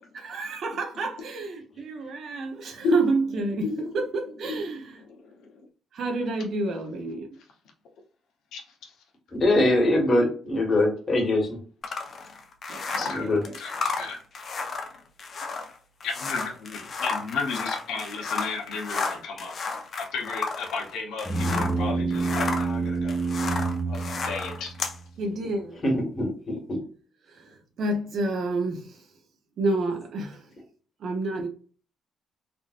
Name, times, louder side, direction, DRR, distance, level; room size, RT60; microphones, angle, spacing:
voice 1, 0.2-5.0 5.9-7.3 12.7-13.5 25.2-25.8 27.3-29.0 29.6-30.5 31.0-31.5, right 2 dB, 65° right, 0.8 m, -29 dB
voice 2, 9.3-11.6 13.1-13.4 25.8-26.8, left 1 dB, 35° left, 1.5 m, -23 dB
sound 1, 11.8-21.8 22.1-25.0, left 4 dB, 50° left, 0.7 m, -32 dB
voice 3, 13.0-13.3 13.6-14.2 16.0-19.5 20.0-23.2 23.9-24.7, left 5 dB, 85° left, 1.0 m, -33 dB
sound 2, 21.3-25.0, right 3 dB, 5° right, 0.6 m, -28 dB
3.5 x 2.6 x 2.4 m
cardioid pair, 90°, 0 cm